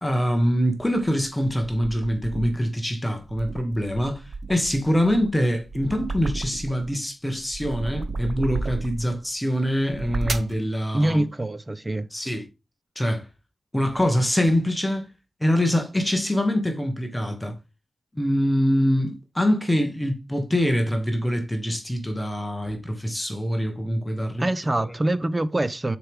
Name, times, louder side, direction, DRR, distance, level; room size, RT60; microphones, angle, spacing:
voice 1, 0.0-11.2 12.1-12.4 12.9-13.3 13.7-15.1 15.4-17.6 18.1-24.4 24.7-24.9, equal, 10° left, 1.2 m, -24 dB
sound 1, 0.8-2.7 3.2-6.9 7.3-9.2 9.8-10.6, right 3 dB, 50° right, 0.8 m, -33 dB
voice 2, 10.9-12.1 24.4-26.0, right 1 dB, 20° right, 0.5 m, -24 dB
6.7 x 4.6 x 3.5 m
wide cardioid pair, 135°, 0 cm